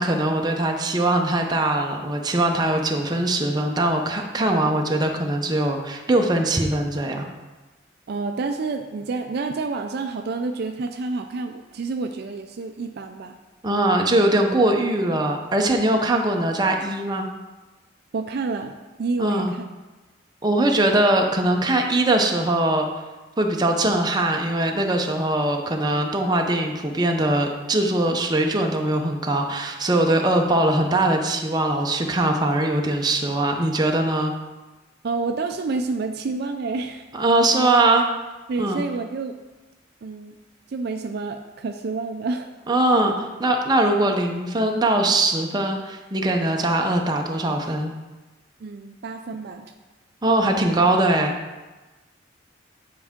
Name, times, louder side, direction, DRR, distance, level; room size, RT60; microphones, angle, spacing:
voice 1, 0.0-7.3 13.6-17.3 19.2-19.5 20.4-22.9 23.4-34.3 37.1-38.0 38.6-38.8 42.7-47.9 50.2-51.3, right 1 dB, 20° right, 2 dB, 0.7 m, -21 dB
voice 2, 8.1-13.3 18.1-19.6 35.0-37.1 38.5-39.4 40.0-40.3 40.7-42.5 48.6-49.7, right 3 dB, 55° right, 6 dB, 0.4 m, -29 dB
9.6 x 4.6 x 3.6 m, 1.2 s
head